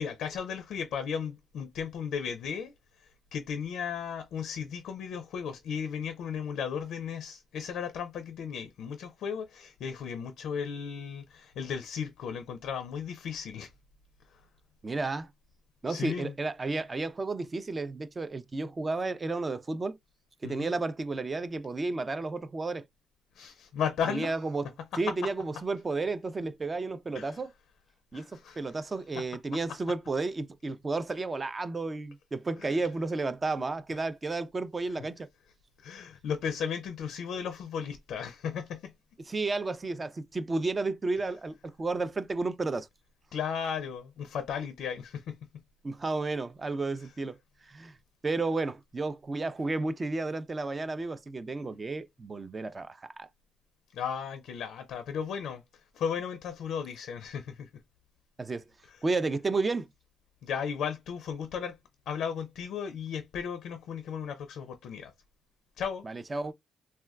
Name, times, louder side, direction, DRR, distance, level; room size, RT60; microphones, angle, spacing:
voice 1, 0.0-2.7 3.0-13.7 14.3-14.4 15.9-16.3 20.4-20.7 23.3-24.3 27.1-27.4 28.1-28.6 29.2-29.3 32.6-32.8 35.8-38.9 43.3-45.4 53.9-57.7 58.9-59.0 60.4-61.8 62.1-65.1 65.8-66.0, left 7 dB, 75° left, 0.4 m, -35 dB
voice 2, 14.8-15.3 15.8-20.0 20.4-22.8 24.1-24.7 25.0-27.5 28.1-35.3 39.3-42.9 45.8-47.4 47.6-47.9 48.2-53.3 58.4-58.6 59.0-59.9 66.0-66.5, right 3 dB, 30° right, 0.4 m, -32 dB
3.5 x 2.2 x 2.2 m
cardioid pair, 90°, 0 cm